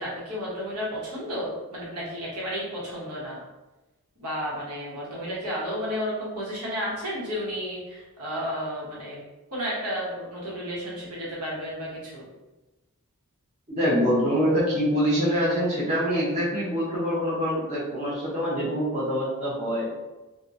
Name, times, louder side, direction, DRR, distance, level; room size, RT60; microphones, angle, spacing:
voice 1, 0.0-3.4 4.2-9.2 9.5-12.3, equal, 80° right, -6 dB, 1.0 m, -32 dB
voice 2, 13.7-19.9, equal, 30° right, -8 dB, 0.8 m, -25 dB
2.9 x 2.2 x 2.5 m, 1.1 s
head